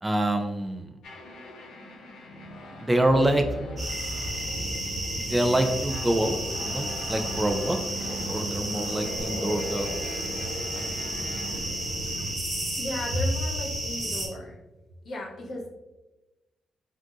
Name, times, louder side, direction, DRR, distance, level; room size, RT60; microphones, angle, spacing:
voice 1, 0.0-0.9 2.8-3.6 5.2-6.4 6.6-7.8 8.1-9.9 10.7-10.9, right 1 dB, 15° right, 5 dB, 0.3 m, -26 dB
sound 1, 1.0-12.3, equal, 80° left, 0.6 m, -39 dB
sound 2, 3.0-7.9, left 1 dB, 75° right, 0.5 m, -42 dB
sound 3, 3.8-14.3, right 1 dB, 35° right, 1.3 m, -32 dB
voice 2, 12.8-14.6 15.0-15.7, left 1 dB, 60° left, -1 dB, 0.9 m, -32 dB
3.5 x 2.5 x 2.4 m, 1.0 s
supercardioid pair, 65°, 0 cm